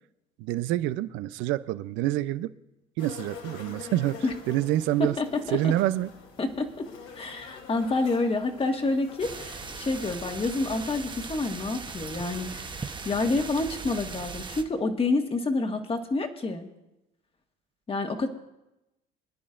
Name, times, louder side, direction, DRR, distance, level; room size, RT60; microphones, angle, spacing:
voice 1, 0.4-2.5 3.0-5.2 5.5-6.1, right 14 dB, 75° right, 15 dB, 0.6 m, -27 dB
sound 1, 3.0-10.8, left 6 dB, 70° left, 2.6 m, -46 dB
voice 2, 5.0-5.6 6.4-6.9 7.1-16.7 17.9-18.3, left 3 dB, 30° left, 5 dB, 1.6 m, -28 dB
sound 2, 9.2-14.6, right 4 dB, 25° right, 1.0 m, -39 dB
25.5 x 10.0 x 2.6 m, 0.92 s
supercardioid pair, 80°, 20 cm